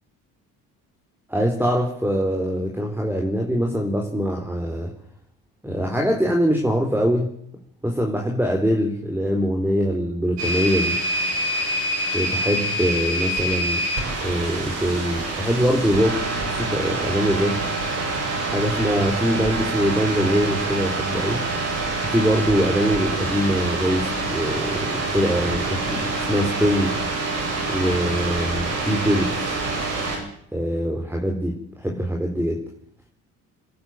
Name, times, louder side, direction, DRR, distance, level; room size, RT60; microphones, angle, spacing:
voice 1, 1.3-4.9 5.6-7.3 7.8-11.0 12.1-13.9 14.2-17.6 18.5-21.4 22.1-27.0 27.7-29.5 30.5-32.7, equal, 5° right, 1 dB, 4.4 m, -23 dB
sound 1, 10.4-30.2, right 2 dB, 70° right, 7.9 m, -26 dB
26.5 x 11.0 x 9.2 m, 0.66 s
hypercardioid pair, 55°, 44 cm